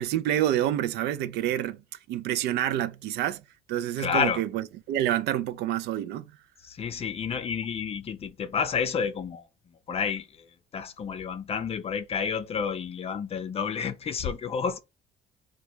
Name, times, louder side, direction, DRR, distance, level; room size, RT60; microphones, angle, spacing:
voice 1, 0.0-1.8 2.1-3.4 3.7-6.2, right 12 dB, 80° right, 0.4 m, -28 dB
voice 2, 4.0-4.4 6.6-9.4 9.9-10.5 10.7-14.8, left 6 dB, 35° left, 0.5 m, -30 dB
3.0 x 2.2 x 3.4 m
cardioid pair, 110°, 17 cm